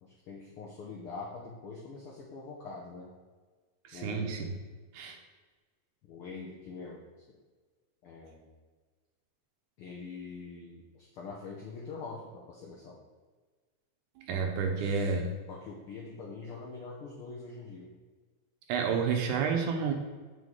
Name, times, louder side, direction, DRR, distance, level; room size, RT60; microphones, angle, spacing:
voice 1, 0.0-3.1 3.9-4.5 6.0-7.0 8.0-8.5 9.8-13.0 14.7-15.1 15.5-17.9, left 4 dB, 75° left, -2 dB, 1.2 m, -44 dB
voice 2, 3.9-4.5 4.9-5.2 14.2-15.3 18.7-19.9, right 5 dB, 80° right, 4 dB, 2.3 m, -30 dB
7.6 x 5.8 x 3.7 m, 1.4 s
omnidirectional pair, 3.6 m